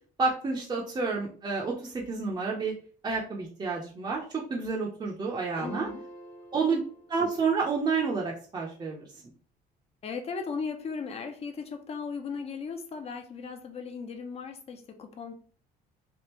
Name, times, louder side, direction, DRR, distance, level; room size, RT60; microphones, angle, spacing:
voice 1, 0.2-2.7 3.0-5.9 6.5-6.8 7.1-9.1, right 4 dB, 25° right, -2 dB, 0.7 m, -29 dB
sound 1, 5.6-7.8, equal, 85° left, 0.8 m, -46 dB
voice 2, 5.6-6.0 10.0-15.3, left 5 dB, 35° left, 5 dB, 0.6 m, -37 dB
3.5 x 2.4 x 3.0 m, 0.41 s
cardioid pair, 110°, 17 cm